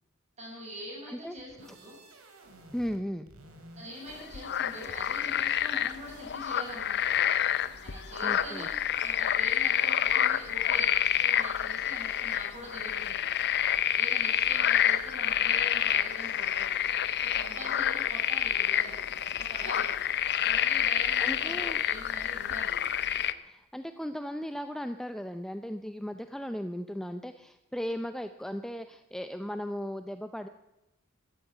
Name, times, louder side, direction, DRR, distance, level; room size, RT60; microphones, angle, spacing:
voice 1, 0.4-2.0 3.8-7.3 7.8-8.7 9.0-13.3 14.0-16.7 17.2-19.9 20.4-22.8, equal, 30° right, -3 dB, 7.5 m, -44 dB
sound 1, 1.4-3.0 3.3-5.2 5.5-6.2 6.6-6.7 7.0-7.2, right 1 dB, 75° right, 2.9 m, -53 dB
voice 2, 2.7-3.3 8.2-8.7 21.2-21.8 23.4-30.5, equal, ahead, 8 dB, 0.5 m, -36 dB
sound 2, 4.1-23.3, left 10 dB, 50° left, 0.7 m, -28 dB
13.0 x 13.0 x 8.5 m, 0.93 s
head